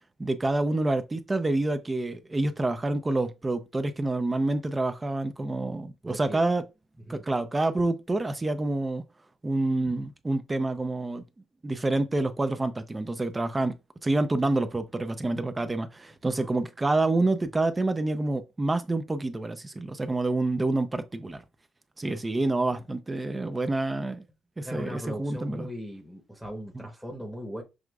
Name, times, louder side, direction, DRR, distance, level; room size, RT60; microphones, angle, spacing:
voice 1, 0.2-6.6 7.1-9.0 9.4-11.2 11.6-13.8 14.0-21.4 22.0-24.2 24.6-25.7, right 2 dB, 20° right, 0.5 m, -27 dB
voice 2, 6.0-6.5 7.0-7.2 16.3-16.5 24.6-27.6, equal, ahead, 0.9 m, -39 dB
6.2 x 2.4 x 2.3 m
cardioid pair, 90°, 0 cm